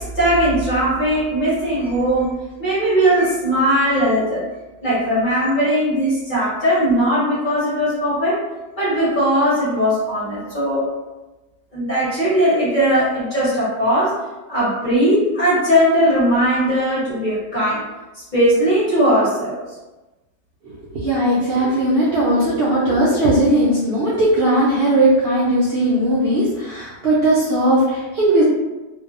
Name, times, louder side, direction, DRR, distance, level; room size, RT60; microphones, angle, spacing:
voice 1, 0.0-2.3 2.6-4.4 4.8-8.4 8.8-10.8 11.7-14.1 14.5-17.8 18.3-19.6, equal, 35° left, -10 dB, 0.9 m, -18 dB
voice 2, 20.6-28.4, right 1 dB, 90° right, -9 dB, 0.5 m, -18 dB
2.6 x 2.3 x 2.4 m, 1.1 s
omnidirectional pair, 1.8 m